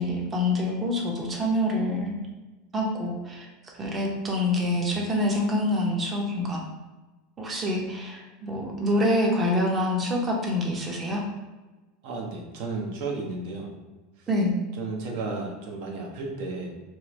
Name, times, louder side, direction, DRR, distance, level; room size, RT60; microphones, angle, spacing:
voice 1, 0.0-2.2 2.7-3.5 3.8-6.6 7.4-11.2 14.3-14.5, left 1 dB, 20° right, 0 dB, 0.6 m, -26 dB
voice 2, 4.6-5.1 12.0-13.7 14.2-14.3 14.7-16.7, right 3 dB, 65° right, 0 dB, 0.7 m, -34 dB
3.0 x 2.4 x 3.1 m, 1.2 s
supercardioid pair, 145°, 0 cm